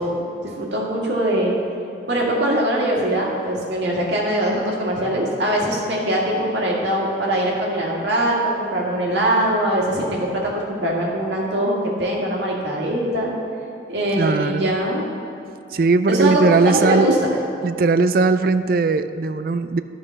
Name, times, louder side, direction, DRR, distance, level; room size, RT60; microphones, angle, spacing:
voice 1, 0.0-1.5 2.1-13.3 13.9-15.1 16.1-17.3, right 1 dB, 75° right, -3 dB, 2.0 m, -22 dB
voice 2, 14.2-14.7 15.7-17.1 17.6-19.8, right 3 dB, 50° right, 11 dB, 0.3 m, -19 dB
12.0 x 5.1 x 5.8 m, 2.7 s
head